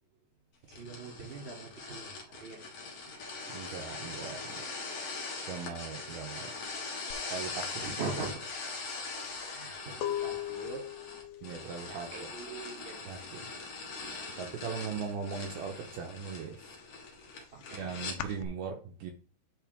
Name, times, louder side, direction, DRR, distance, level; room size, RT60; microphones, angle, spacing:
sound 1, 0.7-18.2, left 4 dB, 50° left, 2.0 m, -41 dB
voice 1, 0.7-2.6 7.8-8.4 9.5-10.8 11.8-13.1 13.9-14.1 14.9-15.0 17.5-18.0, right 4 dB, 20° right, -1 dB, 1.9 m, -42 dB
voice 2, 3.5-4.7 5.4-6.5 7.3-7.8 11.4-12.3 13.1-13.5 14.4-16.8 17.7-19.1, right 6 dB, 90° right, 2 dB, 2.1 m, -39 dB
sound 2, 7.1-7.3 7.6-13.3 13.6-14.1 14.4-15.5 15.9-18.5, left 12 dB, 80° left, 2.4 m, -40 dB
10.5 x 4.4 x 3.5 m, 0.39 s
omnidirectional pair, 5.7 m